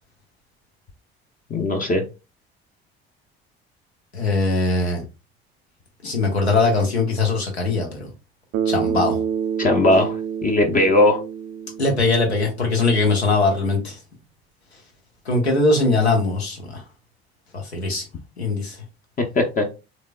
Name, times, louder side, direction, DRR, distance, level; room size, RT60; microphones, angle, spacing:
voice 1, 1.5-2.0 9.6-10.1 10.4-11.2 19.4-19.6, left 2 dB, 25° left, 0.6 m, -18 dB
voice 2, 4.1-5.0 6.0-8.1 8.7-9.2 11.8-14.0 15.3-16.8 17.5-18.0 18.4-18.8, left 3 dB, 90° left, 0.9 m, -21 dB
Bass guitar, 8.5-12.8, right 8 dB, 40° right, 0.4 m, -27 dB
3.5 x 3.0 x 2.2 m
figure-of-eight pair, 55°, 31 cm